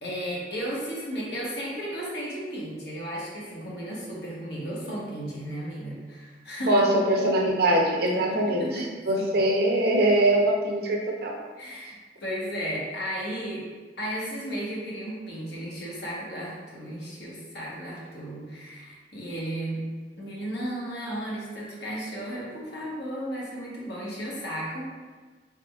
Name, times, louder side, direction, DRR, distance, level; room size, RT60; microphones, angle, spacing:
voice 1, 0.0-7.3 8.0-8.1 8.4-8.9 11.6-11.9 12.2-13.6 14.0-19.8 20.2-24.9, equal, 70° left, -5 dB, 1.2 m, -34 dB
voice 2, 6.7-8.7 9.1-11.3, right 1 dB, 60° right, 0 dB, 0.6 m, -22 dB
4.5 x 3.5 x 2.4 m, 1.4 s
head